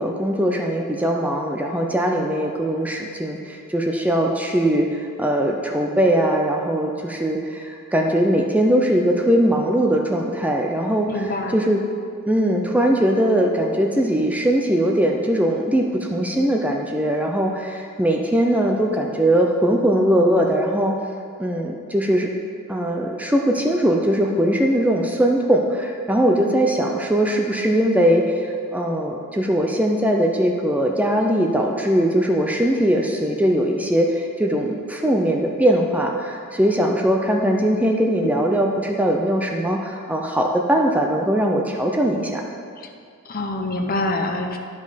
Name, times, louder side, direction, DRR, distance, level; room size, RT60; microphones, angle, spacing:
voice 1, 0.0-11.8 12.3-15.8 16.1-20.9 21.4-22.3 22.7-42.4, right 1 dB, 5° right, 1 dB, 0.5 m, -20 dB
voice 2, 11.1-11.6 43.3-44.6, left 2 dB, 40° left, 4 dB, 0.7 m, -25 dB
11.5 x 5.3 x 5.1 m, 2.3 s
head